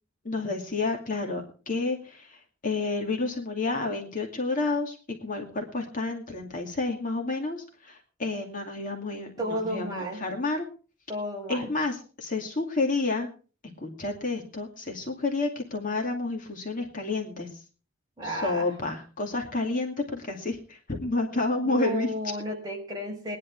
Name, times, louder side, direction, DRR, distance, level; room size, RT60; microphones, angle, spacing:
voice 1, 0.2-5.0 5.2-10.6 11.5-13.3 13.8-17.5 18.2-22.1, left 3 dB, 40° left, 2 dB, 2.4 m, -30 dB
voice 2, 9.4-10.2 11.1-11.7 18.2-18.7 21.6-23.4, equal, 20° right, -1 dB, 5.2 m, -32 dB
19.5 x 11.0 x 4.6 m, 0.38 s
head